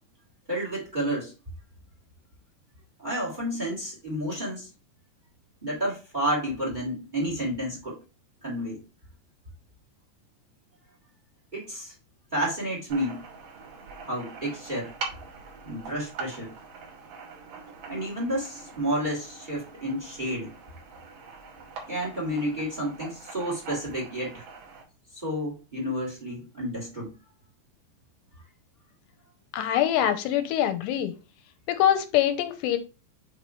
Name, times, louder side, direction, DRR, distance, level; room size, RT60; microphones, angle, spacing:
voice 1, 0.5-1.3 3.0-4.7 5.6-8.0 8.4-8.8 11.5-11.9 12.3-13.2 14.0-14.9 15.6-16.5 17.9-20.5 21.9-24.4 25.1-27.1, equal, 15° right, -3 dB, 1.6 m, -30 dB
sound 1, 12.9-24.8, right 4 dB, 60° right, 2.8 m, -43 dB
voice 2, 29.5-31.1 31.7-32.8, left 11 dB, 85° left, 9 dB, 2.9 m, -24 dB
7.3 x 3.1 x 4.6 m, 0.31 s
omnidirectional pair, 5.0 m